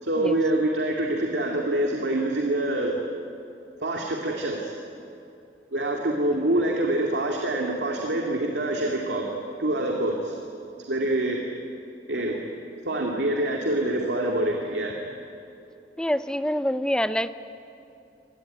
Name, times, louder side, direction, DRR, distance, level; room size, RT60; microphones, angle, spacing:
voice 1, 0.0-3.0 3.8-4.7 5.7-9.3 9.6-10.4 10.9-11.4 12.1-12.4 12.8-15.0, right 1 dB, 80° right, 0 dB, 2.3 m, -25 dB
voice 2, 16.0-17.3, equal, 5° left, 12 dB, 0.5 m, -25 dB
25.0 x 19.5 x 9.4 m, 2.7 s
head